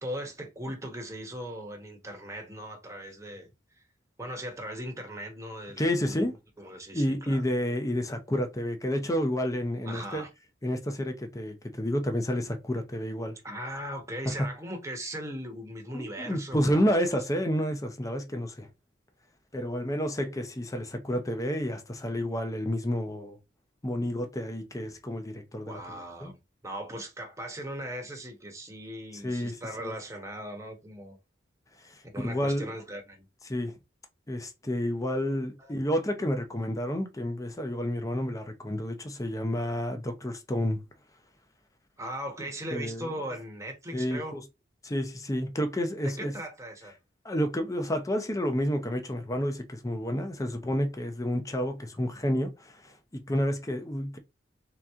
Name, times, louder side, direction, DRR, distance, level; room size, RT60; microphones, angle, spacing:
voice 1, 0.0-3.5 3.8-3.9 4.2-6.2 6.6-7.4 9.8-10.3 13.4-16.9 25.6-26.4 26.6-31.2 32.0-33.2 35.6-35.8 42.0-44.4 46.0-47.0, equal, 15° right, 1.1 m, -39 dB
voice 2, 5.8-6.3 6.9-10.2 10.6-13.4 15.9-18.7 19.5-23.4 23.8-25.8 26.2-26.3 29.2-29.9 32.2-32.7 33.5-33.8 34.3-40.8 42.7-43.1 43.9-44.4 44.8-46.3 47.2-54.2, equal, 15° left, 0.7 m, -30 dB
3.7 x 2.9 x 3.5 m
head